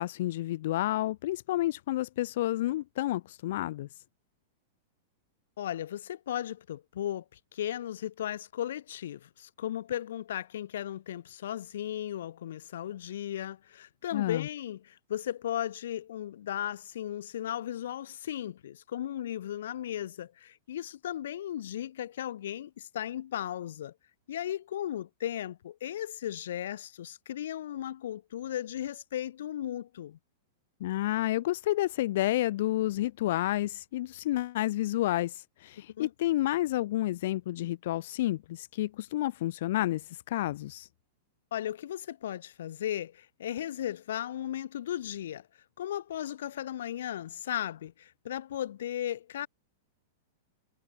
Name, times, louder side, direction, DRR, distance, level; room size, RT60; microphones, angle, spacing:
voice 1, 0.0-3.9 14.1-14.5 30.8-40.9, left 15 dB, 60° left, 0.9 m, -30 dB
voice 2, 5.6-23.9 24.3-30.2 35.9-36.1 41.5-45.5 45.8-49.5, left 11 dB, 80° left, 1.1 m, -36 dB
supercardioid pair, 160°, 0 cm